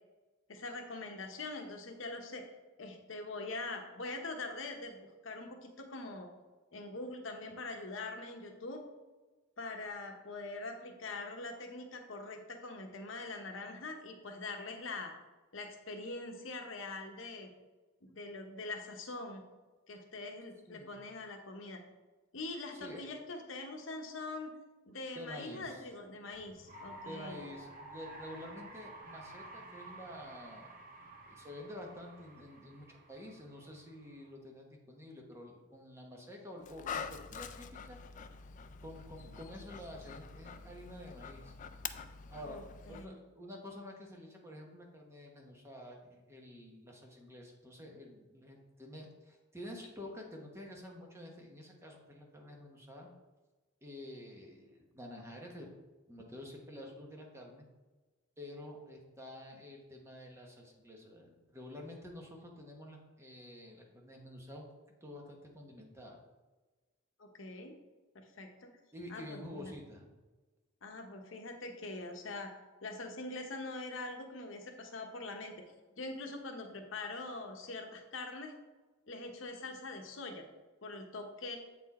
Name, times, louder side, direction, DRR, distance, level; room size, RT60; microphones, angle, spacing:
voice 1, 0.5-2.5 2.8-6.3 6.7-8.8 9.6-15.1 15.5-17.5 18.0-19.4 19.9-21.8 22.3-24.5 24.9-27.4 42.4-43.2 67.2-67.8 68.1-68.7 69.1-69.7 70.8-72.5 72.8-75.5 75.9-78.5 79.1-80.4 80.8-81.6, left 2 dB, 70° left, 3 dB, 0.9 m, -43 dB
voice 2, 22.7-23.0 25.1-25.8 27.0-30.7 31.3-38.0 38.8-41.5 42.3-53.1 53.8-55.7 56.1-57.6 58.4-64.7 65.0-66.2 68.9-70.0, left 1 dB, 15° right, 0 dB, 1.0 m, -49 dB
sound 1, 26.3-34.3, right 2 dB, 45° right, 1.2 m, -52 dB
Dog, 36.6-43.1, left 6 dB, 40° left, 0.3 m, -45 dB
7.5 x 4.5 x 4.2 m, 1.2 s
head